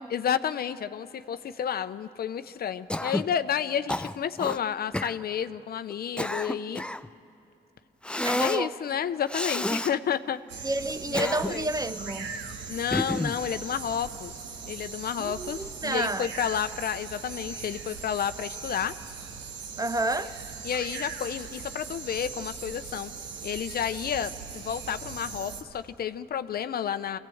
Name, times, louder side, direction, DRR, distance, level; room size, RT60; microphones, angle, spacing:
voice 1, 0.1-6.8 8.4-10.4 11.1-11.7 12.7-14.3 14.6-18.9 20.6-23.1 23.4-27.2, left 8 dB, 60° left, 0.7 m, -31 dB
Cough, 2.9-3.3 3.9-4.6 4.9-5.2 5.9-7.1 8.0-8.6 9.3-9.9 10.9-11.7 12.9-13.4, left 1 dB, 5° left, 0.5 m, -30 dB
voice 2, 8.2-8.7 10.6-12.3 15.2-16.3 19.8-20.4, right 2 dB, 20° right, 0.8 m, -30 dB
sound 1, 10.5-25.6, right 5 dB, 85° right, 1.5 m, -40 dB
25.5 x 16.5 x 7.8 m
supercardioid pair, 65°, 18 cm